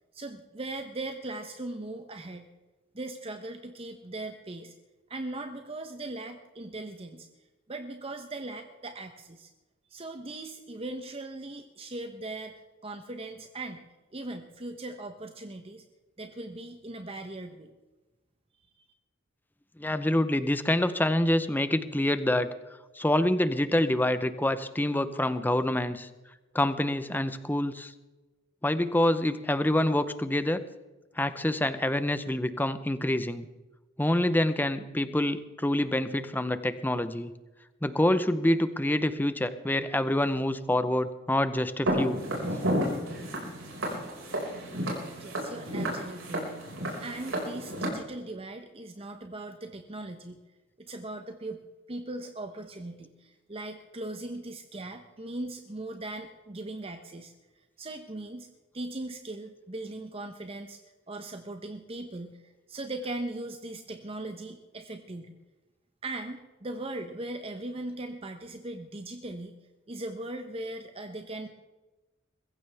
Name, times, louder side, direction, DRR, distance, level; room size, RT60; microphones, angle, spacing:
voice 1, 0.1-2.5 2.9-4.7 5.1-7.3 7.7-9.5 9.9-13.8 14.1-15.8 16.2-17.7 45.2-46.5 47.0-50.4 50.8-51.6 51.9-57.3 57.8-58.5 58.7-60.8 61.1-65.3 66.0-69.6 69.9-71.5, right 2 dB, 30° right, 6 dB, 0.8 m, -39 dB
voice 2, 19.8-22.5 23.0-26.1 26.5-27.9 28.6-30.6 31.2-33.5 34.0-37.3 37.8-42.2, left 1 dB, 10° left, 12 dB, 0.7 m, -26 dB
Walk footsteps, 41.9-47.9, equal, 90° right, 5.2 m, -32 dB
22.5 x 15.0 x 3.4 m, 1.1 s
head